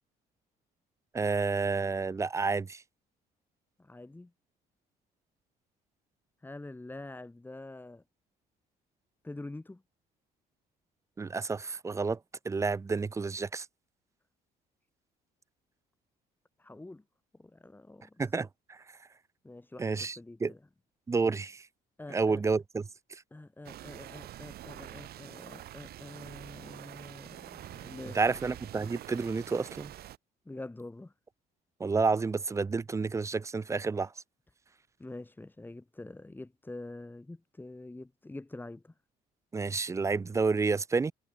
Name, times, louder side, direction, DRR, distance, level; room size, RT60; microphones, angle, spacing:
voice 1, 1.1-2.8 11.2-12.2 12.4-13.7 18.2-18.8 19.8-20.5 21.1-21.6 22.1-22.9 28.1-29.9 31.8-34.1 39.5-41.1, right 4 dB, 15° right, 0.4 m, -30 dB
voice 2, 3.8-4.3 6.4-8.0 9.2-9.8 16.6-17.0 17.3-18.2 19.4-20.6 22.0-22.4 23.3-28.3 30.5-31.1 35.0-38.9, left 2 dB, 10° left, 3.6 m, -46 dB
sound 1, 23.6-30.2, right 13 dB, 65° right, 2.1 m, -46 dB
cardioid pair, 110°, 17 cm